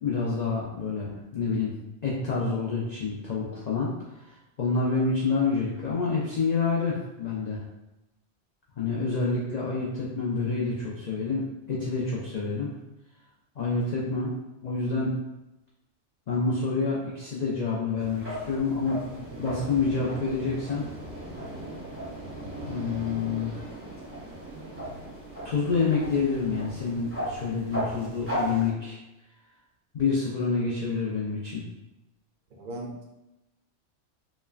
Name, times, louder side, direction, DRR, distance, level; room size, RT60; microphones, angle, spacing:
voice 1, 0.0-1.7 2.0-3.9 4.2-7.6 8.8-12.7 13.6-14.3 14.6-15.1 16.3-20.9 22.6-23.5 25.4-29.0 29.9-31.6, left 4 dB, 85° left, -5 dB, 0.3 m, -28 dB
sound 1, 18.0-28.7, right 1 dB, 15° right, 0.6 m, -37 dB
voice 2, 32.5-33.0, right 1 dB, 60° right, 0 dB, 0.5 m, -38 dB
3.0 x 2.1 x 2.3 m, 0.97 s
omnidirectional pair, 1.3 m